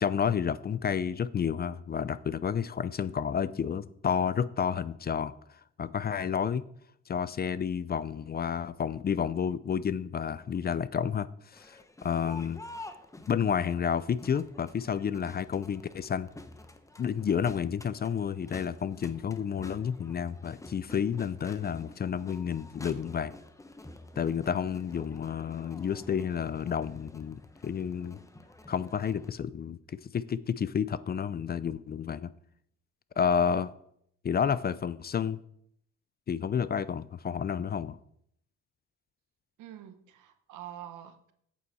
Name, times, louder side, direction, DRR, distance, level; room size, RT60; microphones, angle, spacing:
voice 1, 0.0-5.3 5.8-6.6 7.1-12.6 13.3-16.3 17.0-23.3 24.2-28.2 28.7-32.3 33.2-33.7 34.2-35.4 36.3-38.0, left 7 dB, 35° left, 17 dB, 0.4 m, -30 dB
Crowd, 11.5-29.3, left 2 dB, 10° left, 0.9 m, -50 dB
voice 2, 39.6-41.3, right 11 dB, 85° right, 9 dB, 1.1 m, -46 dB
8.4 x 7.7 x 4.2 m, 0.70 s
cardioid pair, 90°, 30 cm